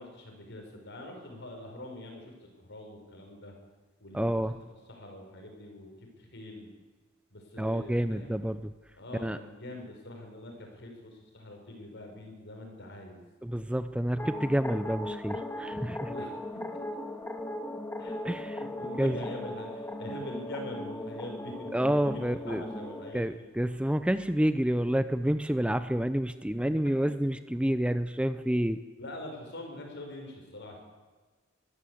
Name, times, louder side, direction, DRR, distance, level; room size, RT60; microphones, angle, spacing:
voice 1, 0.0-3.6 4.0-4.6 4.9-6.7 7.3-8.4 8.9-13.2 16.1-16.4 18.0-18.1 18.8-23.4 29.0-30.8, left 1 dB, 60° left, 2 dB, 5.9 m, -44 dB
voice 2, 4.1-4.5 7.6-8.6 9.2-9.4 13.4-16.1 18.2-18.6 19.0-19.2 21.7-22.6 23.1-28.8, right 1 dB, 5° right, 12 dB, 0.6 m, -28 dB
sound 1, 14.2-23.1, left 1 dB, 10° left, 1.8 m, -38 dB
22.5 x 14.5 x 8.5 m, 1.4 s
head